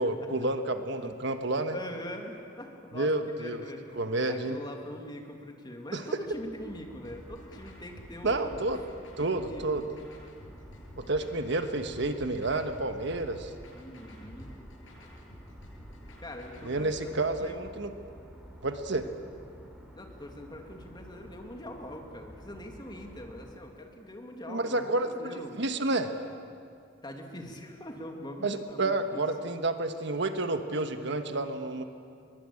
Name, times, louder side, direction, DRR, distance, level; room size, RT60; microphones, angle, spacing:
voice 1, 0.0-1.8 2.9-3.6 3.9-4.6 5.9-6.0 8.2-8.8 9.2-9.8 11.0-13.5 16.6-17.9 18.6-19.1 24.5-26.1 28.4-31.8, right 2 dB, 65° right, 7 dB, 1.4 m, -30 dB
voice 2, 1.7-3.8 4.3-8.6 9.3-9.9 13.7-14.6 16.2-17.6 19.9-25.6 27.0-29.2, left 1 dB, 25° left, 2 dB, 2.7 m, -43 dB
sound 1, 6.2-23.6, equal, 5° right, 4.5 m, -51 dB
sound 2, 7.0-16.8, left 1 dB, 75° left, 7.7 m, -51 dB
23.5 x 22.0 x 8.7 m, 2.4 s
head